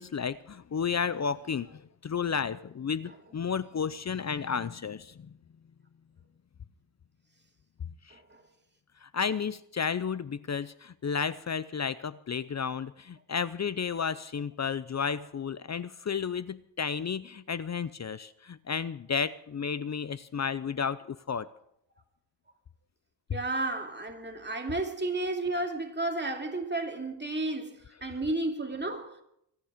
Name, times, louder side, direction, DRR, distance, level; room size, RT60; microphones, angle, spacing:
voice 1, 0.0-5.3 8.1-8.2 9.0-21.5, left 6 dB, 35° left, 0.6 m, -32 dB
voice 2, 8.1-8.4 23.3-29.2, right 2 dB, 25° right, 2.5 m, -32 dB
24.0 x 9.8 x 5.1 m
cardioid pair, 80°, 45 cm